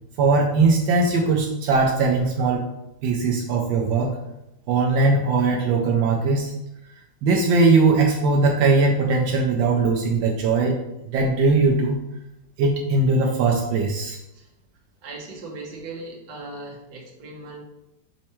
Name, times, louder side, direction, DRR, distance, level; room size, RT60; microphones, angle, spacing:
voice 1, 0.2-2.7 3.0-4.2 4.7-6.5 7.2-10.8 11.1-12.0 12.6-14.2, right 3 dB, 80° right, 0 dB, 1.3 m, -20 dB
voice 2, 15.0-17.6, right 2 dB, 55° right, -2 dB, 1.4 m, -38 dB
5.5 x 2.1 x 4.3 m, 0.89 s
omnidirectional pair, 2.0 m